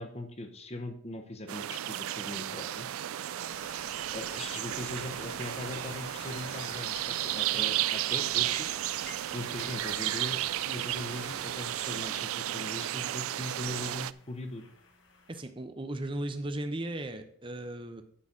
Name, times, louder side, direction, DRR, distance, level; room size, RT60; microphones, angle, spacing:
voice 1, 0.0-2.9 4.1-8.7 9.3-10.4 10.6-14.6, left 2 dB, 30° left, 6 dB, 0.9 m, -40 dB
sound 1, 1.5-14.1, right 13 dB, 85° right, 0.3 m, -33 dB
sound 2, 2.0-15.4, left 3 dB, 65° left, 1.3 m, -56 dB
Summer Storm Wind Thunder Sirens, 3.5-12.1, left 6 dB, 85° left, 0.9 m, -52 dB
voice 2, 15.3-18.0, right 1 dB, 25° right, 7 dB, 0.7 m, -36 dB
9.8 x 4.1 x 7.3 m, 0.62 s
head